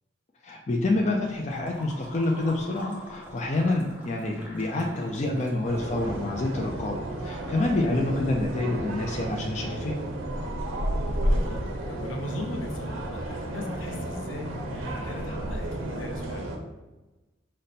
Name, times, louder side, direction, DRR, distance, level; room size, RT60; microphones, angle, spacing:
voice 1, 0.4-10.0, left 2 dB, 35° left, 0 dB, 0.4 m, -27 dB
sound 1, 0.9-6.2, equal, 10° right, 0.8 m, -45 dB
sound 2, 5.6-16.6, right 1 dB, 85° right, 0.7 m, -32 dB
voice 2, 7.6-8.2 11.2-16.6, left 2 dB, 75° left, 1 dB, 0.7 m, -39 dB
5.1 x 2.1 x 4.1 m, 1.1 s
head